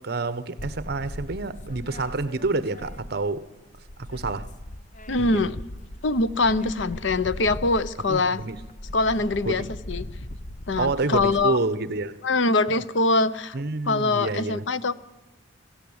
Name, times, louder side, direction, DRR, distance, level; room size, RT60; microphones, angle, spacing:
voice 1, 0.0-3.5 4.0-4.5 5.2-5.5 8.1-8.6 9.4-9.7 10.8-12.2 13.5-14.7, right 3 dB, 60° right, 1.0 m, -28 dB
sound 1, 0.6-3.4 3.7-11.5, left 1 dB, 40° left, 0.8 m, -39 dB
voice 2, 5.1-5.5 6.0-8.4 8.9-10.1 10.7-11.6 12.2-13.6 13.9-14.9, left 3 dB, 75° left, 0.8 m, -23 dB
24.5 x 13.0 x 8.7 m
head